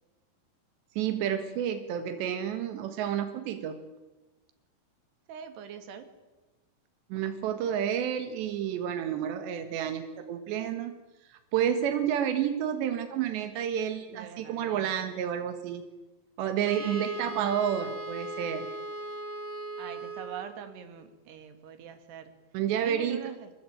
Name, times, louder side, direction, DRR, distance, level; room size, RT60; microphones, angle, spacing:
voice 1, 1.0-3.8 7.1-10.9 11.3-15.8 16.4-18.7 22.5-23.2, right 9 dB, 90° right, 8 dB, 3.8 m, -30 dB
voice 2, 5.3-6.1 14.1-15.2 16.6-17.4 19.8-22.5 22.8-23.5, right 7 dB, 75° right, 8 dB, 4.3 m, -43 dB
Wind instrument woodwind instrument, 16.6-20.7, right 2 dB, 20° left, 3.9 m, -38 dB
27.0 x 21.5 x 9.0 m, 1.1 s
omnidirectional pair, 4.9 m